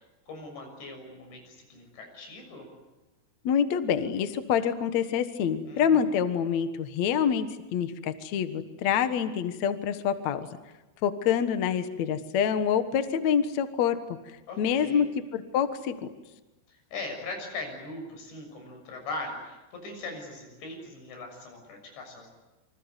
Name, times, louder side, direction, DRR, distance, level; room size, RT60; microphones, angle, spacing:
voice 1, 0.3-2.7 5.7-6.2 14.5-15.1 16.7-22.3, left 2 dB, 90° left, 4 dB, 8.9 m, -40 dB
voice 2, 3.4-10.5 11.0-14.0 14.6-15.1 15.3-16.1, left 8 dB, 60° left, 9 dB, 2.0 m, -26 dB
28.0 x 25.0 x 8.2 m, 1.1 s
omnidirectional pair, 4.9 m